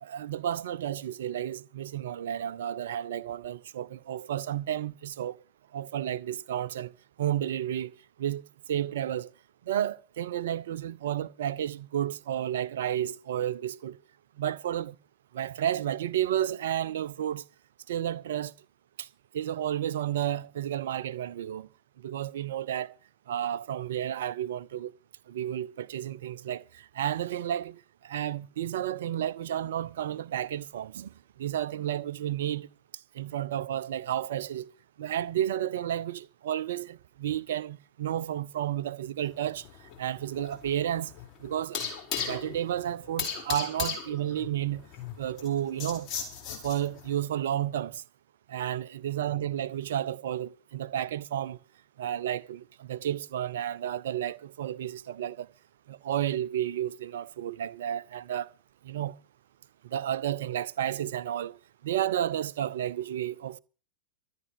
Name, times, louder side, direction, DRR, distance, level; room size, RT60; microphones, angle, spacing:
voice 1, 0.0-5.4 5.7-6.9 7.2-8.4 8.7-9.3 9.7-14.0 14.4-15.0 15.3-17.4 17.9-18.5 19.0-19.1 19.3-21.7 22.0-22.9 23.3-24.9 25.3-32.7 33.1-34.7 35.0-39.6 40.0-41.1 41.4-41.8 42.3-44.8 45.2-46.1 46.6-48.0 48.5-51.6 52.0-55.5 55.9-58.5 58.8-59.2 59.9-61.6 61.8-63.6, right 11 dB, 60° right, 0.6 m, -32 dB
sound 1, 39.3-47.1, left 6 dB, 40° left, 6.1 m, -37 dB
13.5 x 9.7 x 6.8 m
figure-of-eight pair, 90°, 0 cm